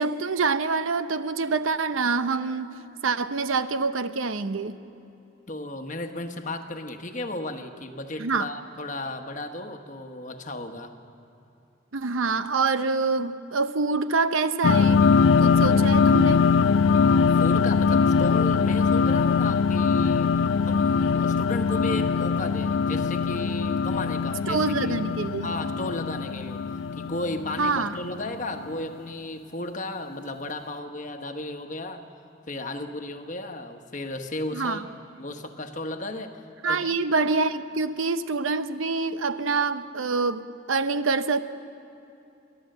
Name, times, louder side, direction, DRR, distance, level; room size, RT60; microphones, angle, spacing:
voice 1, 0.0-2.7 3.0-4.8 8.2-8.5 11.9-15.1 15.4-16.5 24.5-25.5 27.6-27.9 34.5-34.8 36.6-41.4, right 4 dB, 80° right, 11 dB, 0.7 m, -26 dB
voice 2, 5.5-10.9 16.9-20.3 20.6-24.9 25.4-26.6 26.9-32.0 32.5-34.9 35.2-37.0, left 2 dB, 40° left, 5 dB, 1.2 m, -34 dB
sound 1, 14.6-28.6, left 5 dB, 70° left, 0.4 m, -22 dB
29.5 x 12.0 x 7.8 m, 2.7 s
head